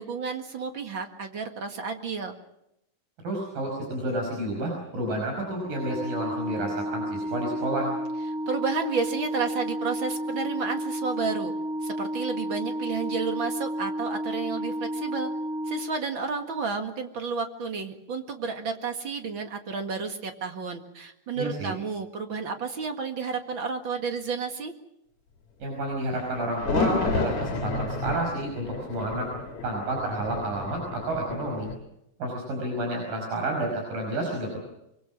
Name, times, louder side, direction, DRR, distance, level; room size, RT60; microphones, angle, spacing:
voice 1, 0.0-2.3 8.5-11.5 11.8-15.3 15.7-24.7, right 5 dB, 40° right, 5 dB, 2.2 m, -31 dB
voice 2, 3.2-7.9 21.4-21.7 25.6-29.3 29.6-31.7 32.2-34.6, right 1 dB, 90° right, 1 dB, 7.1 m, -30 dB
Organ, 5.6-16.5, equal, 65° right, 3.6 m, -32 dB
sound 1, 26.1-31.8, left 3 dB, 55° left, 3.9 m, -31 dB
24.5 x 24.0 x 6.2 m, 0.81 s
omnidirectional pair, 3.8 m